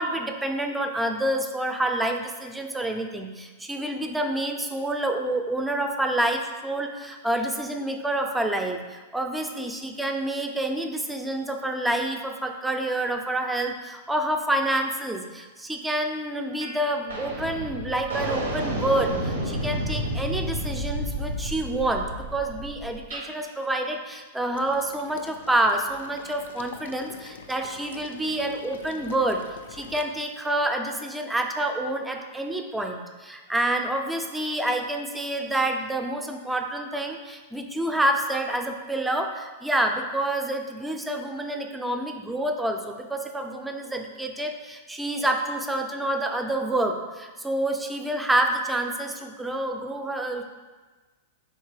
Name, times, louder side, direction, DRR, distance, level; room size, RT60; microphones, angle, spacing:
voice 1, 0.0-29.4 29.7-50.4, right 1 dB, 5° right, 4 dB, 0.3 m, -28 dB
sound 1, 16.6-16.8 17.1-23.3, equal, 90° right, 0.8 m, -31 dB
Water / Liquid, 24.5-30.0, left 6 dB, 85° left, 0.3 m, -45 dB
4.1 x 3.6 x 3.2 m, 1.3 s
hypercardioid pair, 135°, 0 cm